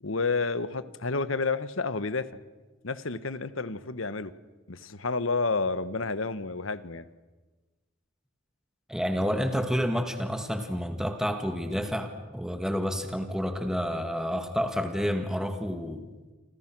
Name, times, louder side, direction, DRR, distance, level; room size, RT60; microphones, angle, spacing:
voice 1, 0.0-2.3 2.8-4.3 4.7-7.1, left 3 dB, 75° left, 14 dB, 1.3 m, -30 dB
voice 2, 8.9-16.1, equal, 5° right, 5 dB, 2.0 m, -29 dB
28.5 x 25.5 x 6.2 m, 1.2 s
head